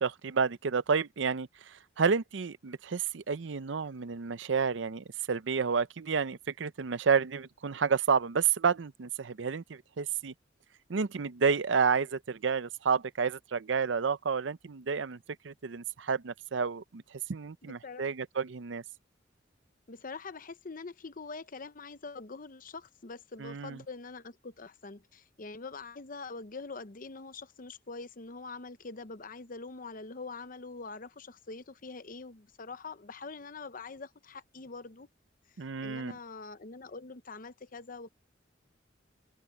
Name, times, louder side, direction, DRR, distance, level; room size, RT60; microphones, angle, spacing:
voice 1, 0.0-10.3 10.9-15.2 15.4-17.0 17.3-18.8 23.4-23.8 35.6-36.1, right 5 dB, 85° right, 0.6 m, -30 dB
voice 2, 17.6-18.1 19.9-35.1 35.8-38.1, left 4 dB, 50° left, 0.9 m, -44 dB
head